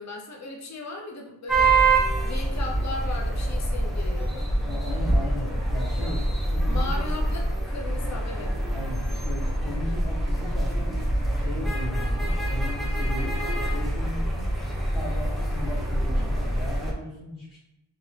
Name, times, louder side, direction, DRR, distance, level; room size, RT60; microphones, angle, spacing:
voice 1, 0.0-1.8 2.2-4.5 6.7-8.6, left 3 dB, 35° left, 1 dB, 0.7 m, -36 dB
sound 1, 1.5-16.9, right 2 dB, ahead, 0.8 m, -25 dB
voice 2, 4.6-7.1 8.7-10.9 11.3-14.5 14.9-17.6, left 1 dB, 85° left, -11 dB, 1.3 m, -37 dB
3.4 x 2.9 x 3.2 m, 0.90 s
wide cardioid pair, 50°, 48 cm